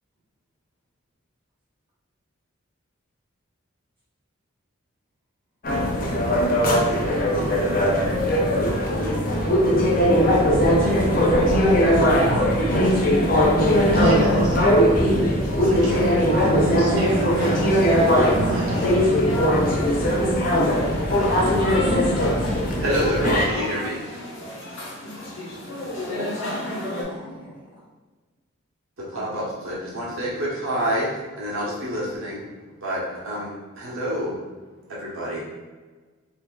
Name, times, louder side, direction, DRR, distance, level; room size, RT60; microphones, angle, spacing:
sound 1, 5.6-23.4, equal, 45° left, 0.6 m, -20 dB
voice 1, 6.6-8.3 26.8-27.7 29.1-29.4, equal, 25° right, -9 dB, 1.2 m, -45 dB
voice 2, 13.9-15.3 15.6-17.7 18.5-19.2, right 3 dB, 70° right, 1 dB, 0.3 m, -29 dB
sound 2, 17.0-27.0, left 1 dB, 70° left, 1.1 m, -31 dB
voice 3, 21.7-24.0 29.1-31.1 31.3-32.4 32.8-34.4 34.9-35.4, equal, 90° right, -5 dB, 1.2 m, -28 dB
4.3 x 2.7 x 2.3 m, 1.3 s
head